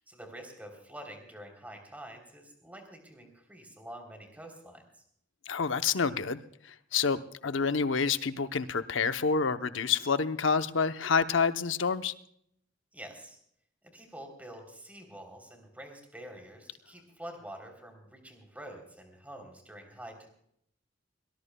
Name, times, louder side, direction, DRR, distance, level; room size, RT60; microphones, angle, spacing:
voice 1, 0.1-5.0 12.9-13.4 13.8-20.3, right 1 dB, 10° right, 3 dB, 3.3 m, -47 dB
voice 2, 5.5-6.4 6.9-12.1, left 5 dB, 85° left, 10 dB, 0.8 m, -28 dB
22.5 x 19.0 x 2.2 m, 0.69 s
head